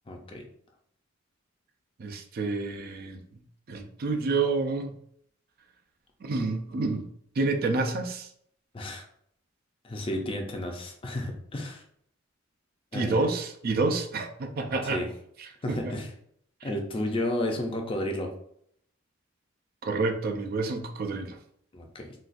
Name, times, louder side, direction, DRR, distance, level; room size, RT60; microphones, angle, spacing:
voice 1, 0.1-0.4 8.7-9.0 9.8-11.8 12.9-13.3 14.6-15.1 15.6-16.1 16.6-18.3 21.7-22.1, left 1 dB, 25° left, 2 dB, 0.5 m, -32 dB
voice 2, 2.0-3.2 3.7-4.9 6.2-7.1 7.4-8.3 12.9-15.0 15.4-16.0 16.6-16.7 19.8-21.4, right 3 dB, 50° right, 4 dB, 0.4 m, -29 dB
3.9 x 2.3 x 2.5 m, 0.67 s
head